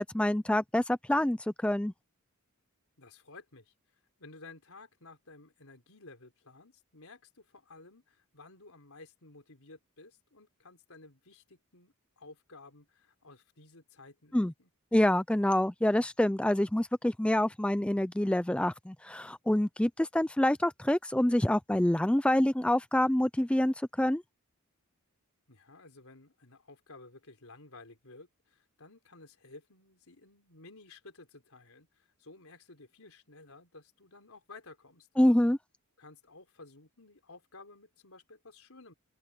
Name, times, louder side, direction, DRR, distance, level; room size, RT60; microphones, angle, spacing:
voice 1, 0.0-1.4 1.6-1.9 14.3-14.5 14.9-24.2 35.2-35.6, left 1 dB, 5° left, 0.4 m, -26 dB
voice 2, 3.0-3.7 4.2-14.7 25.5-35.1 36.0-38.9, left 3 dB, 75° left, 4.1 m, -54 dB
open air
head